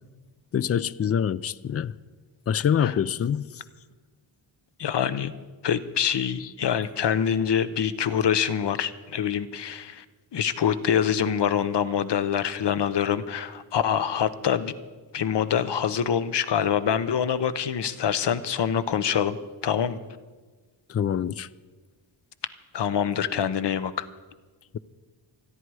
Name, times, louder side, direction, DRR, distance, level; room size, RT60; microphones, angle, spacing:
voice 1, 0.5-1.9 2.5-3.6 6.4-6.5 20.9-21.5, left 8 dB, 35° left, 0.4 m, -25 dB
voice 2, 4.8-5.3 5.6-10.0 10.3-14.7 15.1-19.4 19.6-20.0 22.7-24.1, left 8 dB, 60° left, 0.9 m, -25 dB
27.5 x 10.0 x 4.8 m
wide cardioid pair, 135°, 47 cm